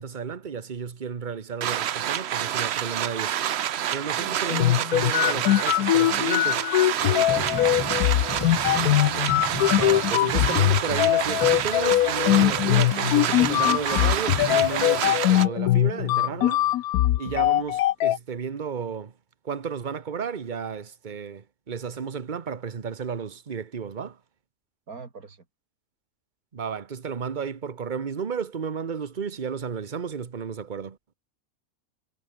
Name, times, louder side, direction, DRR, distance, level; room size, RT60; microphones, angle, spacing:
voice 1, 0.0-3.4 3.9-6.6 9.7-16.6 17.2-19.1 19.4-24.2 26.5-31.0, right 6 dB, 35° right, 1.2 m, -33 dB
sound 1, 1.6-15.5, right 10 dB, 55° right, 0.8 m, -28 dB
voice 2, 4.1-4.7 7.0-7.9 24.9-25.4, right 4 dB, 75° right, 3.1 m, -41 dB
sound 2, 4.5-18.2, left 14 dB, 80° left, 1.1 m, -22 dB
sound 3, 7.0-15.1, left 2 dB, 15° left, 1.4 m, -36 dB
omnidirectional pair, 1.6 m